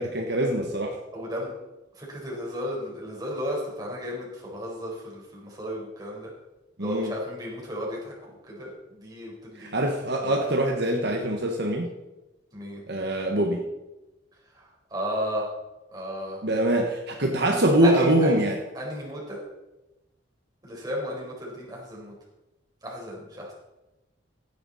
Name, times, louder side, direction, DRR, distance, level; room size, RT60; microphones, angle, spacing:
voice 1, 0.0-1.0 6.8-7.1 9.6-11.9 12.9-13.6 16.4-18.6, right 1 dB, 60° right, 2 dB, 1.4 m, -24 dB
voice 2, 1.1-1.5 2.0-6.3 6.8-9.9 10.2-10.4 12.5-12.8 14.9-15.5 15.9-16.4 17.8-18.4 18.7-19.4 20.6-22.1 22.8-23.5, equal, 20° right, -3 dB, 4.4 m, -34 dB
16.0 x 10.0 x 4.2 m, 1.0 s
head